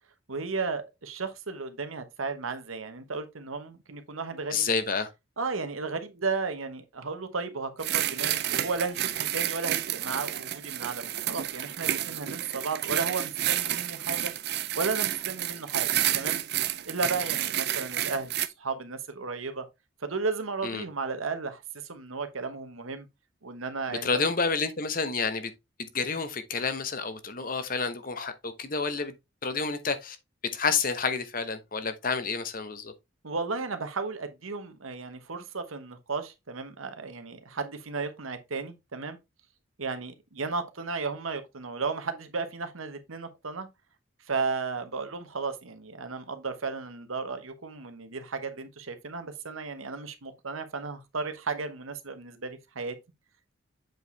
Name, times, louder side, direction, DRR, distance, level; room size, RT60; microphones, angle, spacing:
voice 1, 0.3-4.7 5.4-14.3 14.7-16.4 16.9-19.6 20.0-23.1 23.4-24.2 33.2-39.2 39.8-43.7 44.3-53.0, right 4 dB, 90° right, 1.2 m, -34 dB
voice 2, 4.5-5.1 20.6-20.8 23.9-25.5 25.8-29.1 29.4-30.2 30.5-32.9, left 4 dB, 45° left, 1.0 m, -29 dB
sound 1, 7.8-18.5, right 12 dB, 50° right, 0.6 m, -30 dB
7.8 x 4.9 x 3.3 m
head